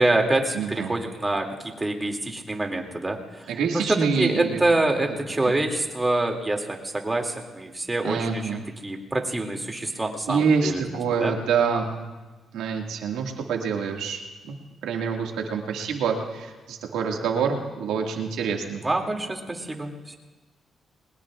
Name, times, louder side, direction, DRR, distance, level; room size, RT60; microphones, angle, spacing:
voice 1, 0.0-10.8 11.2-11.3 18.8-20.2, right 2 dB, 20° right, 2 dB, 2.6 m, -26 dB
voice 2, 0.5-0.9 3.5-4.6 5.4-5.5 8.0-8.6 10.3-12.0 12.5-14.6 14.8-18.9, right 6 dB, 85° right, 1 dB, 2.0 m, -26 dB
22.0 x 20.0 x 2.5 m, 1.2 s
supercardioid pair, 60°, 0 cm